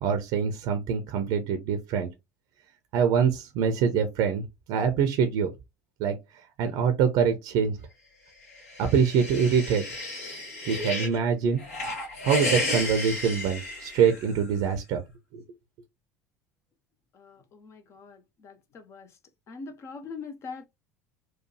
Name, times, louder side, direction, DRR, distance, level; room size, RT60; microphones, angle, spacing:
voice 1, 0.0-2.1 2.9-5.5 6.0-6.2 6.6-7.8 8.8-9.8 10.7-11.6 12.2-15.0 15.3-15.4, right 7 dB, 50° right, 0.6 m, -24 dB
sound 1, 8.5-11.2 11.6-14.4, left 2 dB, 65° left, 1.6 m, -33 dB
voice 2, 17.2-19.1 19.5-20.6, left 4 dB, 35° left, 0.7 m, -42 dB
4.6 x 2.3 x 2.9 m
figure-of-eight pair, 65°, 8 cm